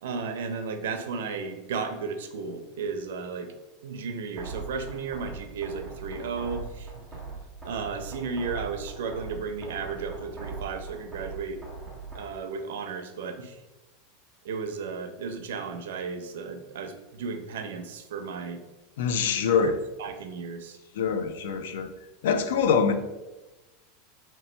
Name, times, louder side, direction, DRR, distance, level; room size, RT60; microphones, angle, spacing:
voice 1, 0.0-3.5 3.8-7.2 7.6-11.6 12.1-13.6 14.4-18.6 19.6-20.8, right 5 dB, 90° right, 7 dB, 0.6 m, -34 dB
sound 1, 4.4-12.4, right 4 dB, 5° right, 0.7 m, -41 dB
voice 2, 19.0-19.8 21.0-21.9 22.2-22.9, left 6 dB, 85° left, 9 dB, 0.4 m, -24 dB
3.3 x 3.0 x 4.3 m, 1.1 s
supercardioid pair, 165°, 0 cm